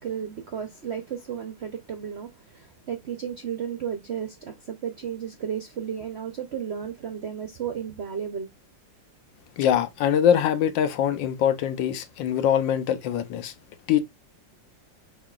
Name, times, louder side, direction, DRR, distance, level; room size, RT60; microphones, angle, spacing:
voice 1, 0.0-8.5, right 8 dB, 70° right, 0.6 m, -33 dB
voice 2, 9.6-13.5 13.9-14.0, left 9 dB, 85° left, 1.4 m, -23 dB
5.6 x 3.7 x 2.3 m
omnidirectional pair, 2.0 m